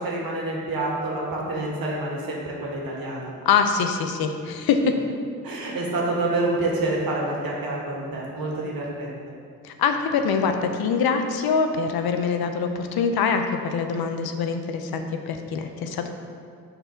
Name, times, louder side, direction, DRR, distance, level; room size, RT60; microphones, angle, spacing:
voice 1, 0.0-3.3 5.4-9.2, right 2 dB, 70° right, -3 dB, 1.8 m, -27 dB
voice 2, 3.5-4.9 9.6-16.1, left 5 dB, 80° left, 6 dB, 0.7 m, -24 dB
6.7 x 4.1 x 5.7 m, 2.2 s
cardioid pair, 75°, 37 cm